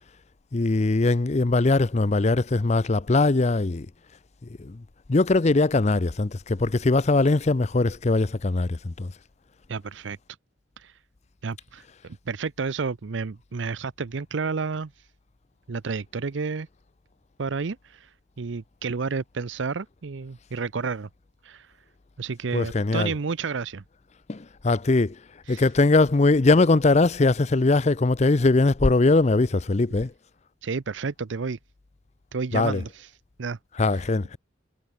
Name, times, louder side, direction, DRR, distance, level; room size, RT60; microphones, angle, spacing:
voice 1, 0.5-3.9 4.6-4.8 5.1-9.1 22.5-23.1 24.3-25.2 25.5-30.1 32.5-32.8 33.8-34.4, left 3 dB, 35° left, 0.5 m, -21 dB
voice 2, 9.7-10.2 10.8-10.9 11.4-14.9 15.7-16.7 17.4-18.1 18.4-21.1 21.4-21.7 22.2-23.8 25.5-25.6 30.6-31.6 32.3-33.1 33.4-33.6, right 4 dB, 70° right, 0.6 m, -31 dB
head